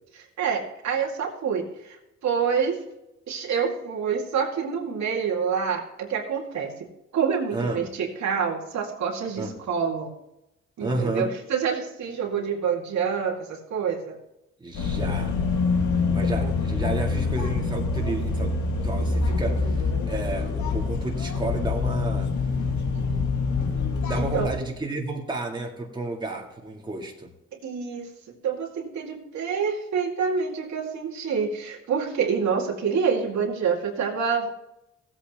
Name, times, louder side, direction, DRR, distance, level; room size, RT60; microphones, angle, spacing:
voice 1, 0.4-2.8 3.3-6.9 7.1-10.1 10.8-14.2 16.4-16.5 24.2-24.5 27.6-28.1 28.4-34.5, right 6 dB, 65° right, 0 dB, 2.2 m, -27 dB
voice 2, 7.5-7.8 9.4-9.5 10.8-11.3 14.6-15.4 16.1-18.5 18.8-22.3 23.3-23.5 24.0-27.3, right 2 dB, 15° right, 0 dB, 2.0 m, -31 dB
sound 1, 14.7-24.5, left 4 dB, 70° left, 1.9 m, -25 dB
15.0 x 8.5 x 3.0 m, 0.88 s
cardioid pair, 90°, 30 cm